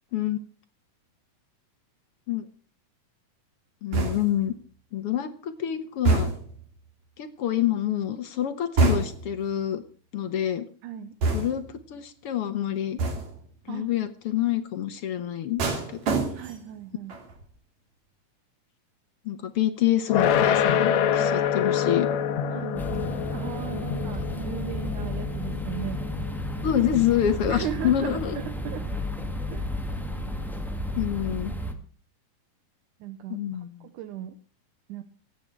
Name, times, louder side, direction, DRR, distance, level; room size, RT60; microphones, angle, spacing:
voice 1, 3.8-4.5 4.9-6.3 7.2-9.8 10.1-10.7 11.3-13.0 13.7-15.6 15.9-16.0 19.3-22.1 26.6-28.4 31.0-31.5 33.3-33.8, left 11 dB, 60° left, 9 dB, 1.6 m, -27 dB
sound 1, 3.9-4.5 6.1-6.6 8.8-9.4 11.2-11.8 13.0-13.5 15.6-16.7 17.1-17.5, right 3 dB, 55° right, 3.8 m, -26 dB
voice 2, 10.8-11.2 13.7-13.9 16.3-17.1 22.5-26.0 27.5-28.9 29.5-29.7 33.0-34.4 34.9-35.0, right 10 dB, 75° right, 9 dB, 2.4 m, -37 dB
sound 2, 20.1-31.1, left 8 dB, 80° left, 2.8 m, -28 dB
sound 3, 22.7-31.7, left 1 dB, ahead, 0.4 m, -33 dB
24.5 x 8.8 x 4.6 m, 0.41 s
omnidirectional pair, 3.9 m